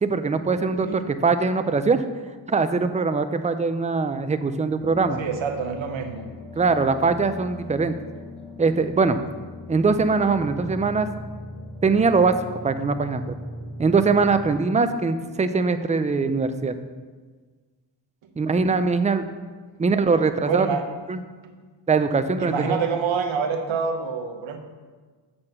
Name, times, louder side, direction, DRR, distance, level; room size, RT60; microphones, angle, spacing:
voice 1, 0.0-2.0 2.5-5.2 6.6-8.0 8.6-9.2 9.7-11.1 11.8-12.3 12.6-13.3 13.8-16.7 18.4-19.2 19.8-20.7 21.1-21.2 21.9-22.8, right 4 dB, 15° right, 10 dB, 0.4 m, -22 dB
sound 1, 4.8-14.5, left 1 dB, 10° left, 2.3 m, -40 dB
voice 2, 5.2-6.2 20.5-20.9 21.4-21.5 22.4-24.6, right 6 dB, 85° right, 5 dB, 1.0 m, -27 dB
7.3 x 4.3 x 6.5 m, 1.4 s
cardioid pair, 95°, 45 cm